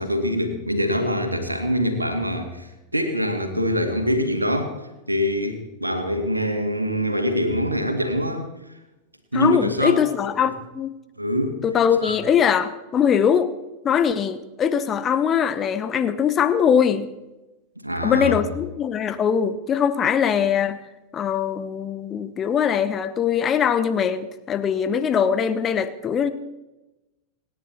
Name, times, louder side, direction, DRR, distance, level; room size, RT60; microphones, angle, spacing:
voice 1, 0.0-4.7 5.1-8.4 9.3-10.0 11.2-11.6 12.0-12.2 17.8-18.4, equal, 85° right, 6 dB, 2.3 m, -24 dB
voice 2, 9.3-10.9 11.6-13.5 13.8-17.1 18.0-20.8 21.1-26.3, left 8 dB, 25° left, 11 dB, 1.2 m, -21 dB
27.5 x 10.0 x 4.3 m, 1.0 s
figure-of-eight pair, 90°, 0 cm